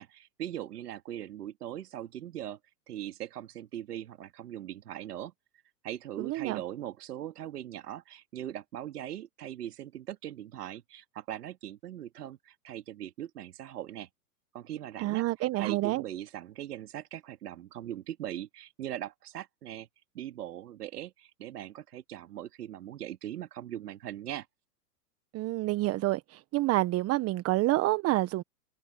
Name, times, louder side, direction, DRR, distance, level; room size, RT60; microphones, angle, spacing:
voice 1, 0.0-2.6 2.9-5.3 5.8-14.1 14.5-15.3 15.6-19.9 20.1-24.5, right 11 dB, 70° right, 2.5 m, -40 dB
voice 2, 6.2-6.6 15.0-16.0 25.3-28.4, right 18 dB, 30° right, 1.3 m, -28 dB
hypercardioid pair, 110°, 49 cm